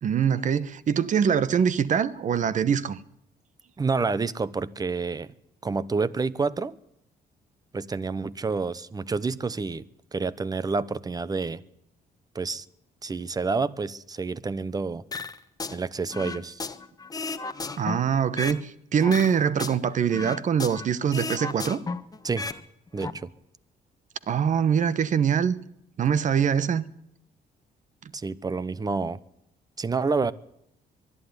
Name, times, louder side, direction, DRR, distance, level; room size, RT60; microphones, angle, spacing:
voice 1, 0.0-3.0 17.8-21.8 24.3-25.6 26.0-26.9, right 7 dB, 50° right, 1.2 m, -23 dB
voice 2, 3.8-5.3 5.6-6.8 7.7-9.9 10.1-11.6 12.3-12.6 13.0-15.0 15.7-16.6 22.2-22.5 22.9-23.3 28.1-29.2 29.8-30.3, right 4 dB, 25° right, 0.9 m, -28 dB
sound 1, 15.1-15.8 16.1-18.6 19.0-20.9 21.1-22.6 22.9-23.1, left 4 dB, 20° left, 1.4 m, -34 dB
23.5 x 11.5 x 9.7 m
cardioid pair, 115°, 16 cm